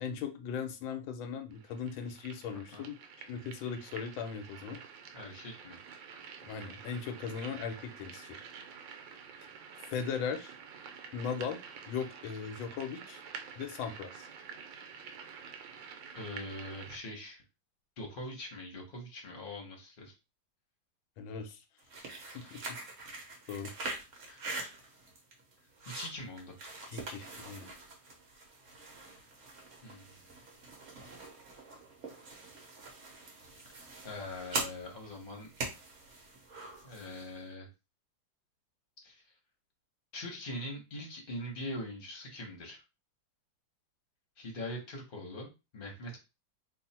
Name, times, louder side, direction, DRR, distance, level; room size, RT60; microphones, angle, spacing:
voice 1, 0.0-3.0 3.3-4.8 6.4-8.4 9.9-10.5 11.1-11.6 11.9-13.2 13.6-14.3 21.2-21.6 22.3-22.8 23.5-23.7 26.9-27.7, left 6 dB, 85° left, 1.5 m, -38 dB
sound 1, 1.5-17.0, right 6 dB, 80° right, 1.4 m, -49 dB
voice 2, 2.5-2.9 5.1-5.8 16.1-17.4 18.0-20.1 24.3-24.5 25.9-26.5 29.8-30.3 33.6-35.5 36.6-37.7 39.0-39.2 40.1-42.8 44.4-46.2, left 1 dB, 35° left, 1.1 m, -43 dB
sound 2, 21.8-37.4, right 2 dB, 50° right, 1.1 m, -44 dB
3.1 x 2.6 x 4.2 m
omnidirectional pair, 2.1 m